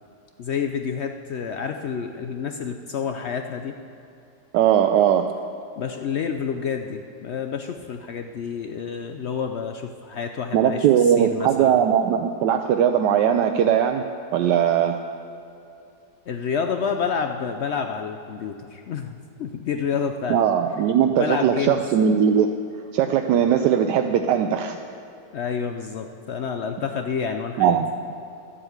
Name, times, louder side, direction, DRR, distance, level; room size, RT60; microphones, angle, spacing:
voice 1, 0.4-3.8 5.8-11.8 16.3-20.4 21.1-21.9 25.3-27.8, left 6 dB, 75° left, 5 dB, 0.6 m, -29 dB
voice 2, 4.5-5.3 10.5-14.1 14.3-15.0 20.3-22.5 22.9-24.8 27.6-27.9, right 9 dB, 85° right, 5 dB, 1.2 m, -19 dB
12.0 x 7.6 x 8.0 m, 2.7 s
omnidirectional pair, 1.8 m